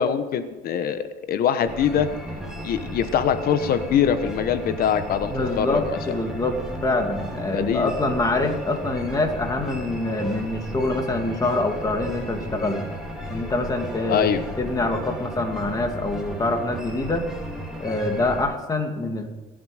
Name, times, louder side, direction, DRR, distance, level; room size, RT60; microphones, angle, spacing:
voice 1, 0.0-2.1 2.6-5.8 7.5-7.9 14.1-14.4, left 8 dB, 60° left, 10 dB, 1.1 m, -23 dB
sound 1, 1.7-18.4, equal, 5° right, 3.4 m, -35 dB
voice 2, 5.3-6.5 6.8-12.8 13.3-14.3 14.6-17.3 17.8-19.3, left 2 dB, 20° left, 4 dB, 2.3 m, -25 dB
23.5 x 7.8 x 5.1 m, 1.2 s
cardioid pair, 110°, 17 cm